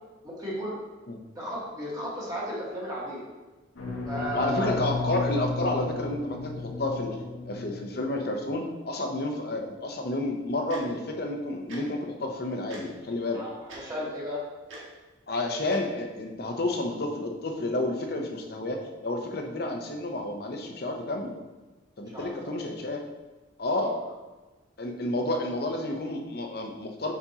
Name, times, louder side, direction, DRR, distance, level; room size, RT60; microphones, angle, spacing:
voice 1, 0.2-0.7 1.3-3.2 4.1-4.7 13.3-14.4 22.1-22.6 23.8-23.9, equal, 20° right, -6 dB, 1.6 m, -34 dB
sound 1, 3.8-8.3, left 3 dB, 90° left, 1.2 m, -34 dB
voice 2, 4.3-13.4 15.3-21.3 22.0-23.0 23.6-23.9 24.8-27.1, left 2 dB, 50° left, 3 dB, 0.7 m, -30 dB
Tick-tock, 10.7-10.8 11.7-11.8 12.7-12.8 13.7-13.8 14.7-14.8 15.7-15.8, right 1 dB, 80° right, 1.6 m, -42 dB
7.1 x 5.2 x 2.8 m, 1.2 s
head